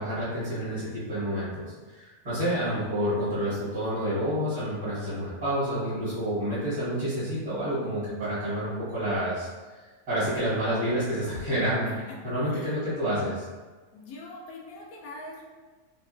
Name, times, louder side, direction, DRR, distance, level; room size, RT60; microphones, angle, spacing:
voice 1, 0.0-9.5 10.1-11.9 12.2-13.4, equal, 35° right, -12 dB, 1.3 m, -29 dB
voice 2, 11.9-12.2 12.5-12.7 13.9-15.4, left 2 dB, 70° left, -2 dB, 0.9 m, -43 dB
2.9 x 2.6 x 2.5 m, 1.3 s
omnidirectional pair, 1.7 m